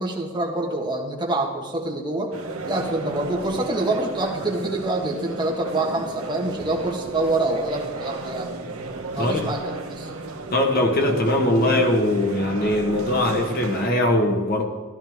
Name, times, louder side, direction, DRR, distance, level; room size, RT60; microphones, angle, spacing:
voice 1, 0.0-2.3 2.6-8.5 9.1-10.1, right 2 dB, 20° right, -2 dB, 1.6 m, -26 dB
sound 1, 2.3-13.9, right 2 dB, 85° right, 1.2 m, -34 dB
voice 2, 9.2-9.5 10.5-14.7, left 1 dB, 45° left, 2 dB, 1.5 m, -21 dB
14.5 x 12.0 x 3.6 m, 1.4 s
head